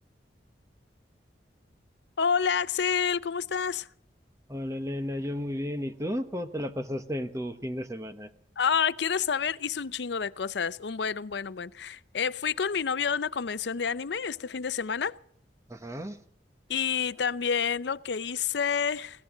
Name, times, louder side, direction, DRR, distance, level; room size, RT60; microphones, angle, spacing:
voice 1, 2.2-3.9 8.6-15.2 16.7-19.2, left 6 dB, 75° left, 0.6 m, -29 dB
voice 2, 4.5-8.3 15.7-16.2, equal, 15° right, 1.0 m, -33 dB
21.0 x 17.0 x 3.8 m
head